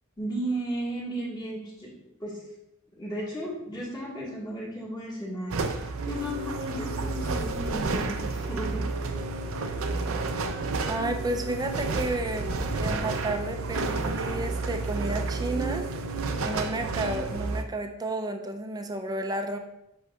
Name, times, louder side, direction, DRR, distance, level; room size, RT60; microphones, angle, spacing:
voice 1, 0.2-1.9 2.2-2.4 3.0-5.6 6.0-8.8, right 1 dB, 20° left, -5 dB, 1.7 m, -34 dB
sound 1, 5.5-17.6, right 3 dB, 80° right, 0.6 m, -30 dB
voice 2, 10.9-15.9 16.4-19.6, right 2 dB, 20° right, 5 dB, 0.5 m, -32 dB
8.0 x 5.3 x 2.4 m, 0.87 s
head